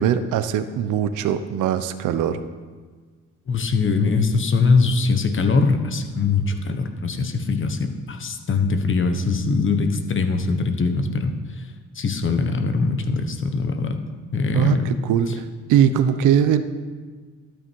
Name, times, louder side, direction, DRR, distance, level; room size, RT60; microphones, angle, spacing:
voice 1, 0.0-2.4 14.5-16.6, right 9 dB, 90° right, 11 dB, 0.8 m, -21 dB
voice 2, 3.5-11.7 11.9-14.0 14.3-15.0 15.3-15.4, left 4 dB, 40° left, 7 dB, 1.3 m, -22 dB
12.5 x 8.8 x 4.7 m, 1.4 s
cardioid pair, 90°, 30 cm